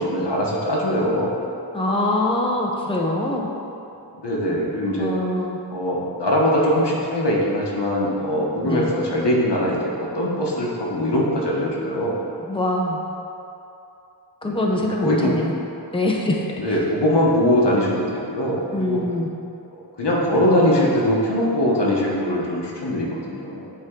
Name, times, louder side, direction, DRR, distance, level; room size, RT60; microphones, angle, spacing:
voice 1, 0.0-1.4 4.2-5.1 5.7-12.3 14.4-15.3 16.6-19.0 20.0-23.7, equal, 80° left, -4 dB, 1.1 m, -22 dB
voice 2, 1.7-3.5 5.0-5.6 8.5-8.9 12.5-13.0 14.4-15.5 15.9-16.7 18.7-19.3, left 1 dB, 15° left, -1 dB, 0.6 m, -23 dB
8.0 x 3.6 x 3.7 m, 2.7 s
wide cardioid pair, 50°, 41 cm